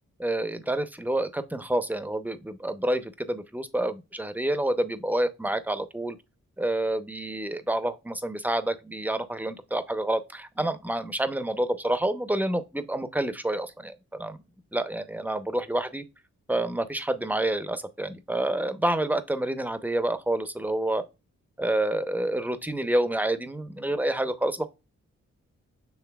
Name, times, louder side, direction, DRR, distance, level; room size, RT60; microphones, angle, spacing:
voice 1, 0.2-6.2 6.6-14.4 14.7-16.0 16.5-21.0 21.6-24.7, right 1 dB, 5° right, 0.7 m, -28 dB
6.8 x 3.2 x 2.3 m
cardioid pair, 55°, 30 cm